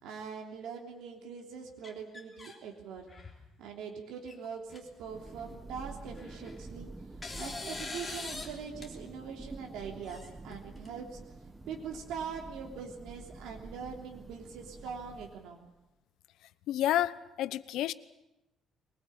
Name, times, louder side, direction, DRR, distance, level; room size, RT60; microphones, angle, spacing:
voice 1, 0.0-3.1 3.6-6.9 7.4-11.2 11.7-15.7, right 6 dB, 85° right, 1 dB, 3.2 m, -42 dB
sound 1, 1.8-2.6 3.0-3.5 4.3-4.4 4.7-4.8 6.1-6.7 7.2-8.5 8.8-8.9 10.0-10.9, left 3 dB, 15° left, 3.2 m, -42 dB
Thunder, 4.8-15.7, right 3 dB, 10° right, 1.0 m, -48 dB
voice 2, 16.7-17.9, left 13 dB, 75° left, 16 dB, 0.9 m, -30 dB
23.0 x 20.5 x 8.8 m, 0.92 s
cardioid pair, 170°, 0 cm